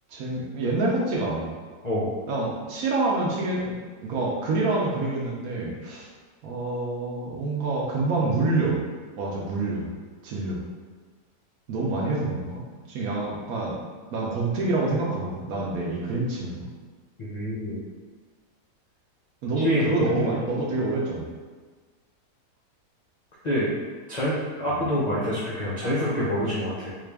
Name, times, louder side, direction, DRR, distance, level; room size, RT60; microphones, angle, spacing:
voice 1, 0.1-1.5 2.3-6.1 6.4-8.8 9.2-9.9 10.2-10.6 11.7-13.8 14.1-16.7 19.4-21.3 24.7-24.8, right 2 dB, 65° right, -2 dB, 1.0 m, -27 dB
voice 2, 17.2-17.8 19.6-20.4 23.4-23.7 24.1-26.9, equal, 60° left, -7 dB, 0.4 m, -26 dB
3.7 x 2.4 x 3.3 m, 1.4 s
omnidirectional pair, 1.7 m